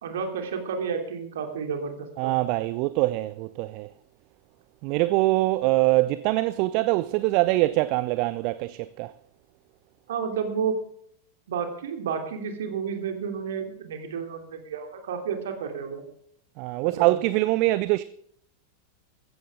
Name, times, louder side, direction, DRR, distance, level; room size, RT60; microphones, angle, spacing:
voice 1, 0.0-2.3 10.1-10.8 11.5-16.0 16.8-17.1, right 6 dB, 60° right, 2.9 m, -31 dB
voice 2, 2.2-3.9 4.8-9.1 16.6-18.0, right 19 dB, 45° right, 0.5 m, -24 dB
15.5 x 14.0 x 3.6 m
figure-of-eight pair, 90°, 0 cm